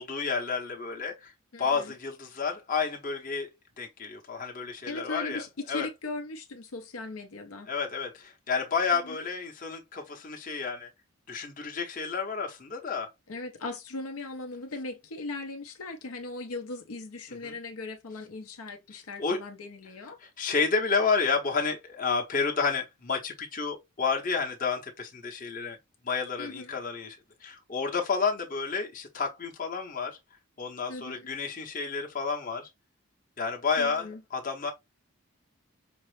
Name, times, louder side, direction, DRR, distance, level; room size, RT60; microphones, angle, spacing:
voice 1, 0.0-1.3 1.6-3.5 3.8-5.4 5.7-5.9 7.7-10.9 11.3-13.1 17.4-17.5 19.2-19.4 20.4-25.8 26.0-27.2 27.4-30.2 30.6-32.7 33.4-34.7, left 5 dB, 35° left, 0.7 m, -30 dB
voice 2, 1.5-1.9 4.9-7.7 9.0-9.2 13.3-20.2 26.4-26.8 30.9-31.3 33.8-34.2, left 3 dB, 75° left, 0.6 m, -38 dB
5.1 x 2.0 x 3.2 m
head